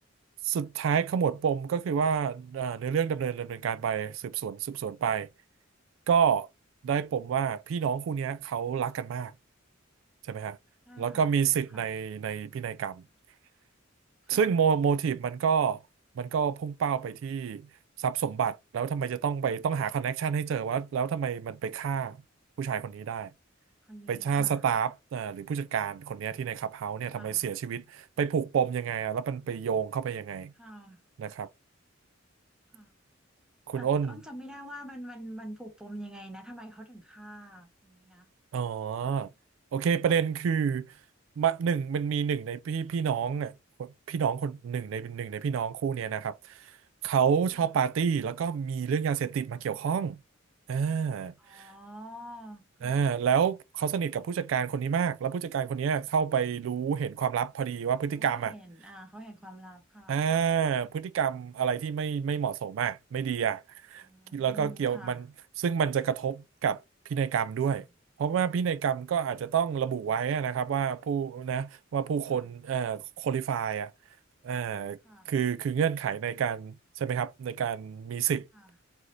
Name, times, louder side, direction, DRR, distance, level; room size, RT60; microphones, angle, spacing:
voice 1, 0.4-5.3 6.1-6.5 6.8-9.3 10.3-10.6 11.0-13.0 14.3-15.8 16.2-17.7 18.0-22.2 22.6-23.3 24.1-30.5 31.2-31.5 33.7-34.1 38.5-39.3 39.7-40.9 41.4-43.5 43.8-46.8 47.0-50.2 50.7-51.7 52.8-58.5 60.1-63.6 63.9-64.1 64.3-65.2 65.6-66.8 67.1-67.8 68.2-73.9 74.4-75.0 75.3-78.5, right 7 dB, 70° right, 0.3 m, -29 dB
voice 2, 10.9-11.3 11.7-11.9 14.2-14.6 23.8-24.6 27.1-27.5 30.5-31.0 32.7-32.9 33.7-38.3 47.5-47.7 51.4-53.1 58.2-60.5 64.0-65.2 72.2-72.5 75.0-75.3 78.5-78.8, equal, 5° right, 0.9 m, -46 dB
4.8 x 2.6 x 3.8 m
head